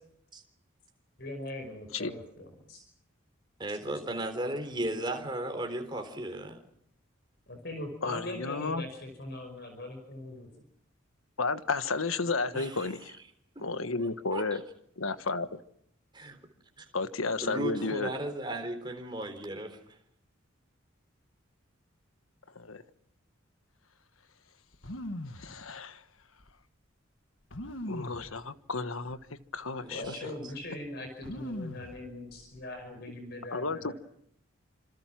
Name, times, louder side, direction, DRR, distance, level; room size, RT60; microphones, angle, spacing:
voice 1, 1.2-2.8 7.5-10.5 29.9-33.9, left 1 dB, 50° left, 5.3 m, -41 dB
voice 2, 3.6-6.6 12.5-12.9 13.6-13.7 14.0-14.6 16.1-16.4 16.8-16.9 17.4-19.8 29.8-30.3, right 1 dB, 20° right, 3.7 m, -36 dB
voice 3, 8.0-8.9 11.4-13.1 13.6-14.6 15.0-15.6 16.9-18.1 22.5-22.8 25.3-26.0 27.8-29.2 29.5-30.1 33.5-33.9, left 3 dB, 85° left, 1.4 m, -32 dB
sound 1, 24.7-25.5 26.4-26.5 27.5-28.3 29.1-29.2 29.6-30.1 31.2-32.0 32.3-32.8, left 1 dB, 65° left, 1.8 m, -39 dB
27.0 x 26.5 x 6.0 m
head